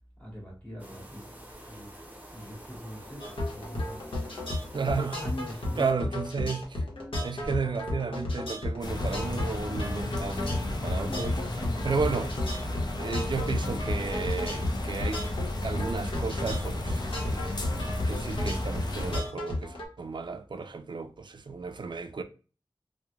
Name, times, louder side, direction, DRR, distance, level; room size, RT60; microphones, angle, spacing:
voice 1, 0.2-1.9 2.3-4.0 5.2-6.2 7.3-7.7 11.1-12.1, equal, 15° left, 1.5 m, -42 dB
sound 1, 0.8-5.9, equal, 20° right, 0.6 m, -47 dB
sound 2, 3.2-19.9, left 1 dB, 90° left, 0.8 m, -33 dB
voice 2, 4.7-5.2 5.8-6.8 7.2-11.4 11.8-12.3 13.0-15.2 15.6-22.2, right 5 dB, 60° right, 0.3 m, -33 dB
sound 3, 8.8-19.2, left 1 dB, 50° left, 0.5 m, -33 dB
2.9 x 2.1 x 2.3 m
wide cardioid pair, 80°, 9 cm